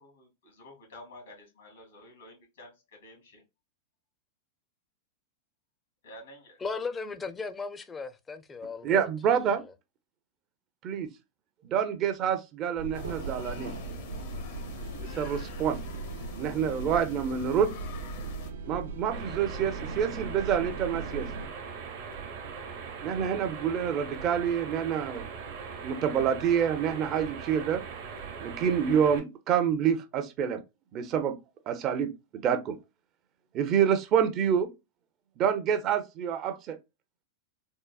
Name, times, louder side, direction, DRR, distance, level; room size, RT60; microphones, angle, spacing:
voice 1, 0.0-3.4 6.0-6.6, left 1 dB, 85° left, 1.8 m, -50 dB
voice 2, 6.6-9.1, left 4 dB, 20° left, 0.4 m, -36 dB
voice 3, 8.8-9.6 10.8-11.1 11.6-13.7 15.0-15.8 16.4-17.7 18.7-21.3 23.0-25.3 25.8-27.8 28.4-30.6 30.9-31.4 31.7-32.8 33.5-34.7 35.4-36.8, right 8 dB, 40° right, 0.5 m, -27 dB
sound 1, 12.8-21.5, right 4 dB, 90° right, 0.5 m, -39 dB
sound 2, 12.9-18.5, left 3 dB, 70° left, 0.7 m, -43 dB
sound 3, 19.1-29.2, right 6 dB, 65° right, 0.9 m, -40 dB
3.6 x 2.0 x 2.3 m
hypercardioid pair, 120°, 0 cm